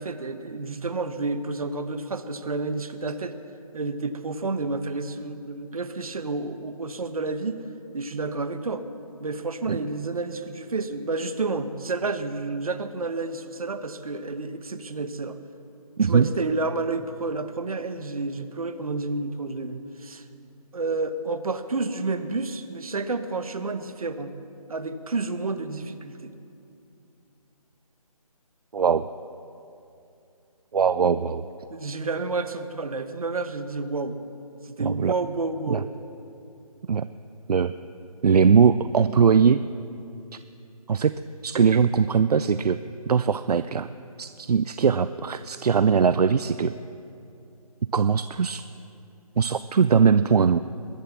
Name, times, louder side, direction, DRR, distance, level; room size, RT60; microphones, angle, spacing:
voice 1, 0.0-3.3 3.7-7.6 7.9-8.9 9.2-15.4 16.1-20.2 20.7-24.3 24.7-26.3 31.7-34.2 34.6-35.9, right 3 dB, 65° right, 10 dB, 1.1 m, -30 dB
voice 2, 16.0-16.3 28.7-29.1 30.7-31.4 34.8-35.1 35.7-35.8 36.9-37.1 37.5-37.7 38.2-39.6 40.9-41.2 41.4-42.8 43.1-43.9 44.2-46.7 47.9-48.6 49.4-50.6, right 6 dB, 85° right, 13 dB, 0.5 m, -20 dB
21.5 x 7.4 x 7.3 m, 2.7 s
hypercardioid pair, 170°, 19 cm